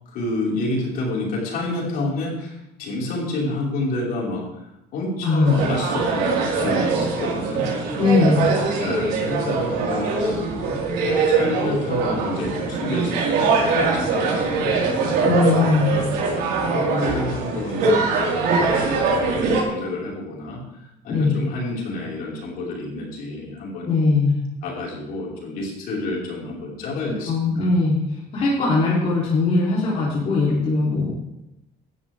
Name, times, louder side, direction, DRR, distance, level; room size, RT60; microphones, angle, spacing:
voice 1, 0.0-4.6 4.9-7.7 8.2-8.4 8.8-10.8 11.2-13.3 13.7-19.3 19.6-23.9 24.6-27.7, left 2 dB, 55° left, -4 dB, 5.2 m, -29 dB
voice 2, 5.2-5.7 8.0-8.5 15.2-16.1 21.1-21.3 23.8-24.4 27.3-31.1, left 3 dB, 35° left, -7 dB, 3.5 m, -20 dB
sound 1, 5.5-19.6, right 4 dB, 65° right, 4.5 m, -22 dB
17.5 x 12.5 x 3.6 m, 0.90 s
cardioid pair, 175°, 18 cm